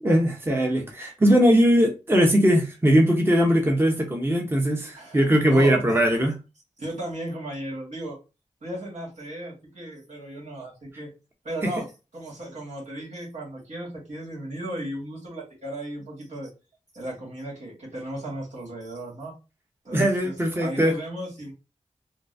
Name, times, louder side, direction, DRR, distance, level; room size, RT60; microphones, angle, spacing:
voice 1, 0.0-6.3 11.6-11.7 19.9-20.9, equal, 20° right, 2 dB, 0.8 m, -20 dB
voice 2, 5.0-6.2 6.8-8.2 8.6-11.1 11.4-11.9 12.1-16.5 16.9-19.3 19.8-21.5, right 1 dB, 70° right, -3 dB, 1.8 m, -35 dB
3.8 x 2.3 x 2.6 m, 0.29 s
cardioid pair, 50°, 13 cm